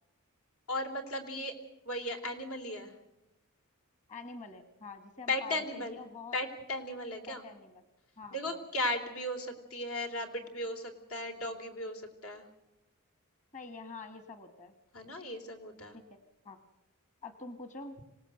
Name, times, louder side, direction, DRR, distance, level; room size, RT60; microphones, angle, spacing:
voice 1, 0.7-1.5 1.9-2.9 5.3-6.0 6.3-7.4 8.3-12.4 14.9-16.0, left 1 dB, 80° left, 5 dB, 3.5 m, -36 dB
voice 2, 4.1-6.3 7.3-7.8 8.2-8.6 13.5-14.7 16.1-16.2 16.4-16.6 17.2-18.0, left 4 dB, 35° left, 8 dB, 1.4 m, -46 dB
26.0 x 18.0 x 7.9 m, 0.93 s
head